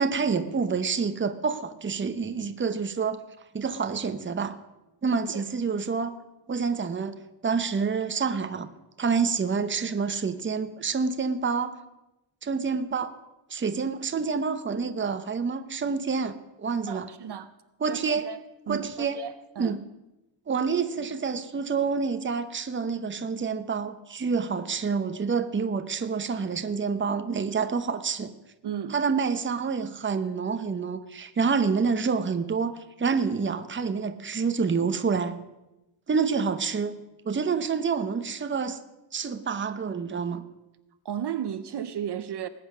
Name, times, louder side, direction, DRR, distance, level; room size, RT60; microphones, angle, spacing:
voice 1, 0.0-3.2 3.5-4.6 5.0-6.1 6.5-8.7 9.0-11.8 12.4-13.2 13.5-17.1 17.8-18.3 18.7-19.2 19.6-19.8 20.5-28.3 28.9-35.4 36.1-36.9 37.2-38.8 39.1-40.4, right 5 dB, 25° right, 0.8 m, -28 dB
voice 2, 16.9-17.5 17.9-18.4 18.7-19.8 28.6-29.0 41.0-42.5, right 9 dB, 55° right, 0.7 m, -34 dB
20.0 x 8.7 x 6.1 m
wide cardioid pair, 145°, 49 cm